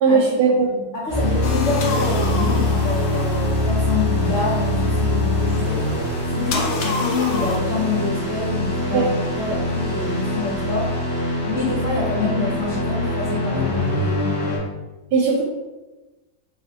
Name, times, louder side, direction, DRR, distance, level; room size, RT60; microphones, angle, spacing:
voice 1, 0.0-0.7 8.9-9.0 15.1-15.4, right 4 dB, 75° right, -2 dB, 1.2 m, -17 dB
voice 2, 0.6-5.9 6.3-9.1 9.3-10.9 11.4-14.5, left 4 dB, 65° left, -6 dB, 0.7 m, -27 dB
sound 1, 1.1-14.6, left 1 dB, 35° left, 1.2 m, -23 dB
sound 2, 1.4-3.9 6.5-7.6, left 3 dB, 90° left, 1.3 m, -28 dB
3.2 x 2.8 x 2.8 m, 1.1 s
omnidirectional pair, 2.0 m